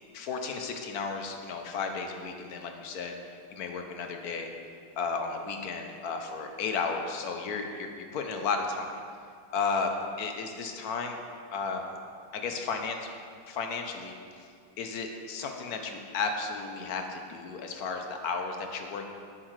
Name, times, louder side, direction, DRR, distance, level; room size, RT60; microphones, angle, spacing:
voice 1, 0.1-4.5 5.0-9.0 9.5-9.9 10.2-11.2 11.5-11.8 12.3-13.0 13.5-14.5 14.8-19.1, left 5 dB, 65° left, 4 dB, 1.1 m, -33 dB
10.5 x 7.6 x 3.2 m, 2.2 s
omnidirectional pair, 2.0 m